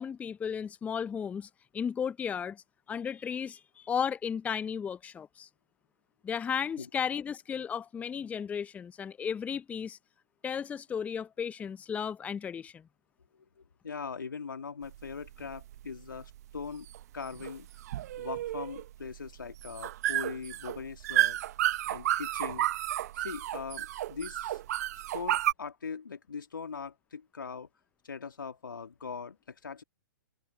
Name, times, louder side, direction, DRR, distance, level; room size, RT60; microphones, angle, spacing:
voice 1, 0.0-5.5 6.2-10.0 10.4-12.8, left 7 dB, 10° left, 0.8 m, -34 dB
voice 2, 13.8-16.9 17.1-17.7 18.2-21.4 21.9-22.7 23.2-24.6 25.1-27.7 28.0-29.8, left 5 dB, 75° left, 3.2 m, -41 dB
sound 1, 14.8-25.5, right 13 dB, 50° right, 1.2 m, -32 dB
figure-of-eight pair, 120°, 11 cm